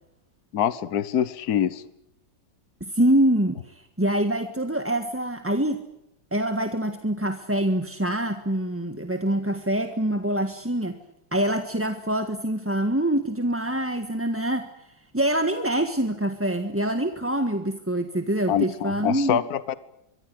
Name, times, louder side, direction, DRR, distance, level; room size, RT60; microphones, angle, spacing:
voice 1, 0.5-1.8 18.5-19.8, left 9 dB, 60° left, 16 dB, 1.5 m, -25 dB
voice 2, 2.8-5.8 6.3-11.0 11.3-14.9 15.1-19.4, right 1 dB, 10° right, 8 dB, 1.4 m, -25 dB
25.0 x 23.5 x 7.8 m, 0.85 s
omnidirectional pair, 1.9 m